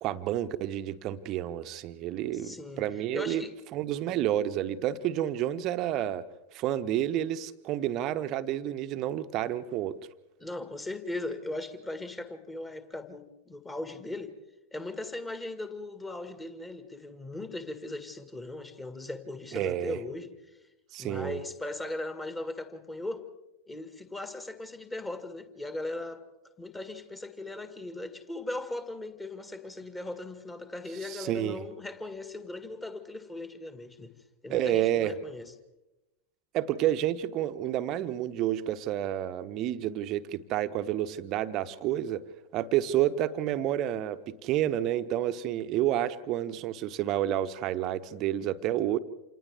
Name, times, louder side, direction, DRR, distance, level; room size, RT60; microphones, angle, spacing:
voice 1, 0.0-3.4 3.7-6.2 6.5-10.0 19.5-20.0 20.9-21.4 31.0-31.6 34.5-35.1 36.5-42.2 42.5-49.0, right 12 dB, 35° right, 11 dB, 1.0 m, -30 dB
voice 2, 2.3-2.8 3.1-3.6 10.4-14.3 14.7-20.3 21.0-23.2 23.7-26.2 26.6-34.1 34.4-35.5, left 2 dB, 10° left, 9 dB, 1.9 m, -38 dB
29.0 x 27.5 x 3.6 m, 0.98 s
figure-of-eight pair, 90°, 0 cm